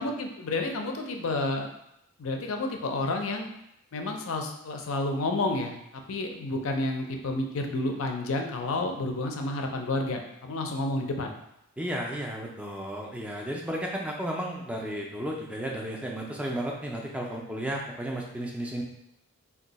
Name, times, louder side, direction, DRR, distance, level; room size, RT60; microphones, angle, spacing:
voice 1, 0.0-1.7 2.2-3.5 3.9-11.3, left 2 dB, 60° left, 3 dB, 0.4 m, -30 dB
voice 2, 11.8-18.8, right 1 dB, 5° right, -1 dB, 0.4 m, -33 dB
2.6 x 2.2 x 4.0 m, 0.80 s
head